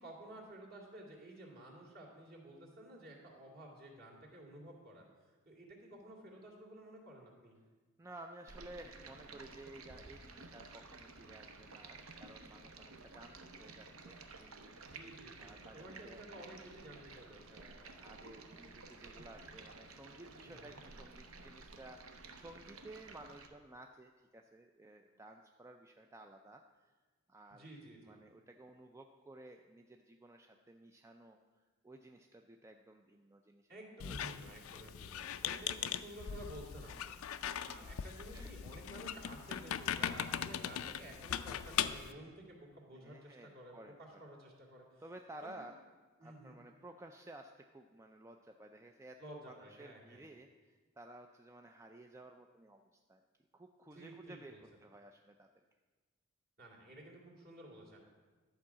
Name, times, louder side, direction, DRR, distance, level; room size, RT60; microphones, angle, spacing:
voice 1, 0.0-5.1 5.5-7.6 14.8-17.6 20.4-20.8 27.5-28.2 33.7-37.2 37.6-45.0 45.4-45.7 46.2-46.6 49.2-50.2 53.9-54.6 56.6-58.0, right 1 dB, 45° right, -2 dB, 2.4 m, -53 dB
voice 2, 8.0-14.8 15.4-16.2 17.4-26.9 27.3-31.4 31.8-33.7 34.0-34.2 34.4-34.9 36.2-36.4 37.4-38.0 38.3-38.5 42.9-44.2 45.0-45.8 46.2-53.2 53.5-54.5 54.8-55.5, right 1 dB, 15° right, 4 dB, 0.4 m, -55 dB
Stream, 8.5-23.5, right 3 dB, 70° right, 0.9 m, -53 dB
Squeak, 34.0-42.1, left 9 dB, 70° left, 0.4 m, -40 dB
11.5 x 4.7 x 7.3 m, 1.3 s
head